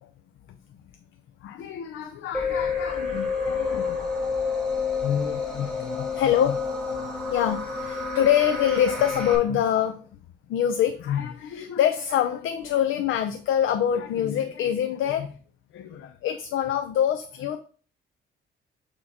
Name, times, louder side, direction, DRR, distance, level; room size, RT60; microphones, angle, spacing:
voice 1, 1.4-4.3 5.0-6.6 6.9-10.0 10.5-15.4 15.7-17.6, left 10 dB, 80° left, 8 dB, 0.6 m, -25 dB
sound 1, 2.3-9.4, left 4 dB, 5° left, 3.4 m, -29 dB
8.6 x 3.0 x 4.2 m, 0.42 s
cardioid pair, 90°, 20 cm